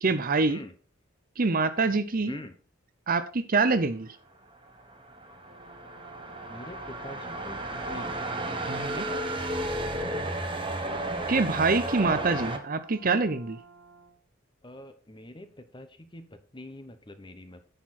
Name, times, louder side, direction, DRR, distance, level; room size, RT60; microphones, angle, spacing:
voice 1, 0.0-0.6 1.4-2.4 3.1-4.2 8.7-9.0 11.3-13.6, right 3 dB, 40° right, 11 dB, 0.7 m, -25 dB
sound 1, 4.6-12.6, right 1 dB, 25° right, 1.2 m, -33 dB
Brass instrument, 5.5-14.2, right 5 dB, 65° right, 2.1 m, -51 dB
voice 2, 6.5-8.2 8.7-9.2 14.6-17.6, left 1 dB, 20° left, 9 dB, 0.9 m, -44 dB
10.5 x 6.8 x 4.2 m, 0.39 s
head